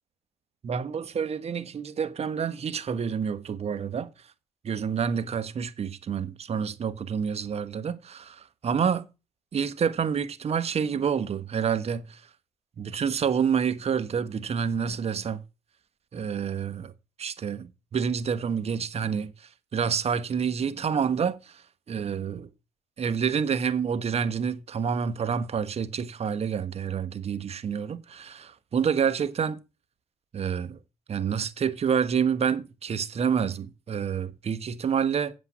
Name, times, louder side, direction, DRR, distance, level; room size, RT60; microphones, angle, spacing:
voice 1, 0.6-4.1 4.6-9.1 9.5-12.2 12.8-15.4 16.1-16.9 17.2-21.6 21.9-22.5 23.0-29.6 30.3-30.8 31.1-35.3, right 7 dB, 40° right, 1.3 m, -28 dB
8.6 x 7.6 x 6.2 m
hypercardioid pair, 65°, 16 cm